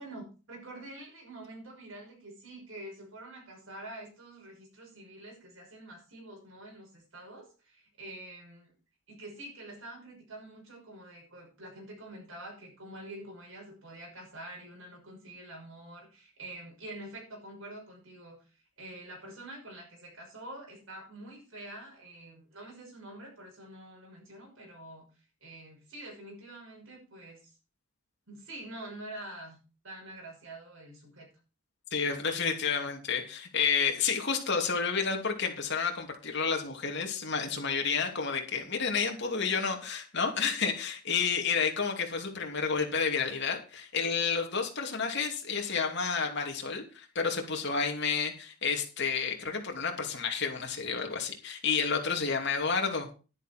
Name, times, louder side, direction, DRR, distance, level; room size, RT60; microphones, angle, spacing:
voice 1, 0.0-8.7 9.1-18.4 18.8-25.0 25.4-27.6 28.3-31.3, right 1 dB, 70° right, -1 dB, 6.0 m, -46 dB
voice 2, 31.9-53.1, left 5 dB, 55° left, 2 dB, 2.8 m, -30 dB
11.5 x 9.9 x 4.5 m, 0.34 s
head